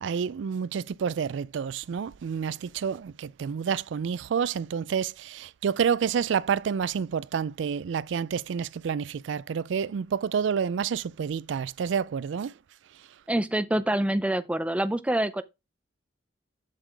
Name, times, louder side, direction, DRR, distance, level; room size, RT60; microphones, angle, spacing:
voice 1, 0.0-12.5, right 7 dB, 70° right, 0.3 m, -29 dB
voice 2, 13.3-15.4, right 1 dB, 5° right, 0.4 m, -26 dB
7.6 x 6.3 x 3.4 m
head